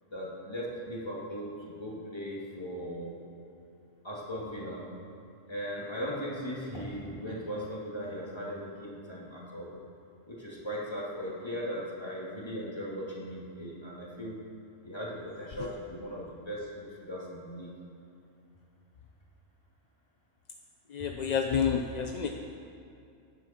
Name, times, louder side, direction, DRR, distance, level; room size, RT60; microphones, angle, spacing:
voice 1, 0.1-3.2 4.0-4.8 5.5-9.7 10.3-14.5 14.8-17.8, equal, 20° left, -5 dB, 2.6 m, -38 dB
voice 2, 20.9-22.3, left 7 dB, 45° left, 3 dB, 0.6 m, -29 dB
17.5 x 10.0 x 4.5 m, 2.6 s
omnidirectional pair, 1.3 m